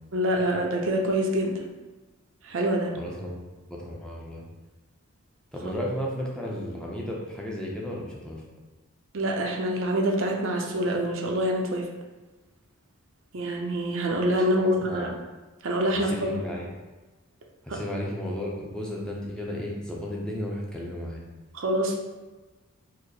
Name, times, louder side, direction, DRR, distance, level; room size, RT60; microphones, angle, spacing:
voice 1, 0.1-1.6 2.4-2.9 9.1-11.9 13.3-15.1 15.6-16.1 17.7-17.8 21.5-22.0, equal, 60° right, 1 dB, 0.6 m, -26 dB
voice 2, 2.9-3.4 3.7-4.4 5.5-8.4 14.6-15.2 15.9-16.7 17.6-21.2, left 1 dB, 5° left, -4 dB, 0.5 m, -34 dB
4.7 x 2.0 x 4.7 m, 1.2 s
head